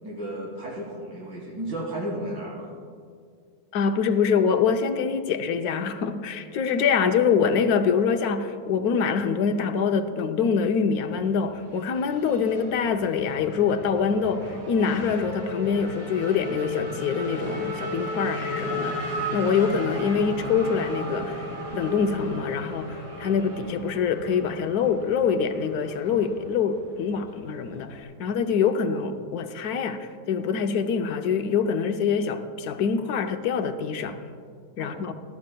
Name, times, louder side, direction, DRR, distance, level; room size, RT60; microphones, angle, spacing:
voice 1, 0.0-2.7 34.8-35.0, right 1 dB, 80° right, -5 dB, 2.9 m, -34 dB
voice 2, 3.7-18.9 19.3-21.5 21.7-34.2 34.8-35.1, left 6 dB, 65° left, 8 dB, 1.1 m, -25 dB
Race car auto racing / Accelerating revving vroom, 11.1-28.0, left 1 dB, 60° right, 4.1 m, -35 dB
19.5 x 13.0 x 2.3 m, 2.1 s
omnidirectional pair, 1.9 m